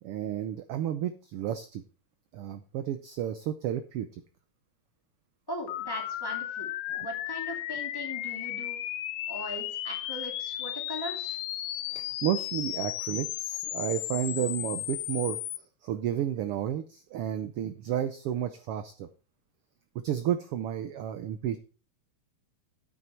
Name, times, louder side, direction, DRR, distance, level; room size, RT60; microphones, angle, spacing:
voice 1, 0.0-1.8 2.3-4.1 6.9-7.1 11.9-15.4 15.8-19.1 20.0-21.6, right 10 dB, 80° right, 11 dB, 1.3 m, -32 dB
voice 2, 5.5-8.8 9.3-11.4, equal, 10° left, 1 dB, 1.8 m, -39 dB
sound 1, 5.7-15.6, left 13 dB, 85° left, 2.0 m, -35 dB
9.2 x 8.3 x 4.4 m, 0.36 s
omnidirectional pair, 3.3 m